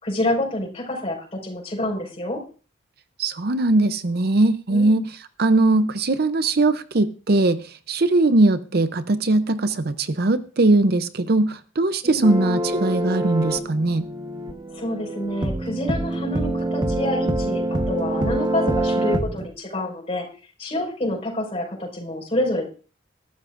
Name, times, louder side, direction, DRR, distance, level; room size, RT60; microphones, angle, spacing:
voice 1, 0.0-2.4 4.7-5.0 12.0-12.6 14.7-20.2 20.6-22.6, left 1 dB, 30° left, -1 dB, 5.0 m, -28 dB
voice 2, 3.2-14.1, right 2 dB, 50° right, 11 dB, 0.6 m, -20 dB
sound 1, 12.2-19.5, right 1 dB, 20° right, 1.1 m, -25 dB
21.5 x 12.5 x 2.5 m, 0.38 s
head